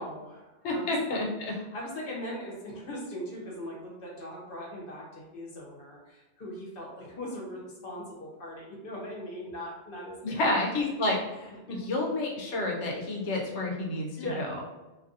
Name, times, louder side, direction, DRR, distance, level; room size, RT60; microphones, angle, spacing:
voice 1, 0.0-0.9 1.5-10.6 11.7-11.8 14.1-14.5, left 1 dB, 55° left, -3 dB, 1.0 m, -40 dB
voice 2, 0.6-1.5 10.2-11.5 11.9-14.1 14.4-14.6, left 2 dB, 80° left, -1 dB, 1.0 m, -29 dB
2.7 x 2.5 x 2.6 m, 1.1 s
omnidirectional pair, 1.2 m